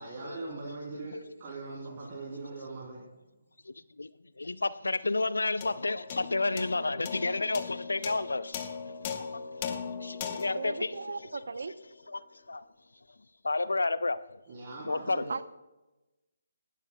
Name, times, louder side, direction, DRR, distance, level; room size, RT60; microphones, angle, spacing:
voice 1, 0.0-3.1 14.5-15.3, right 3 dB, 35° right, 3.2 m, -41 dB
voice 2, 3.7-4.1 4.4-9.3 9.6-11.2 12.1-12.6 13.4-14.2 14.9-15.3, left 3 dB, 75° left, 0.4 m, -31 dB
sound 1, 5.6-12.2, left 6 dB, 30° left, 1.2 m, -40 dB
voice 3, 10.6-11.7 15.3-15.4, right 4 dB, 65° right, 0.7 m, -36 dB
19.0 x 12.0 x 2.3 m
figure-of-eight pair, 145°, 0 cm